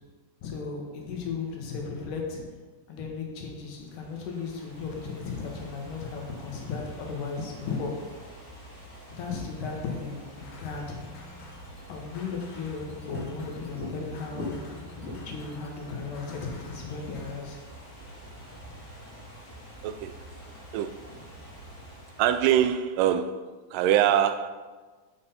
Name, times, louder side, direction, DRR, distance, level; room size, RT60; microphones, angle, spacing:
voice 1, 0.4-2.4 2.9-7.9 9.1-11.0 11.9-14.6 15.3-17.6, left 5 dB, 80° left, 2.8 m, -35 dB
Ocean / Fireworks, 3.7-23.0, left 1 dB, 35° left, 3.3 m, -44 dB
sound 1, 10.4-17.4, left 3 dB, 65° left, 1.9 m, -48 dB
voice 2, 19.8-20.1 20.7-21.0 22.2-24.5, right 10 dB, 90° right, 2.2 m, -24 dB
6.8 x 6.1 x 5.5 m
omnidirectional pair, 3.7 m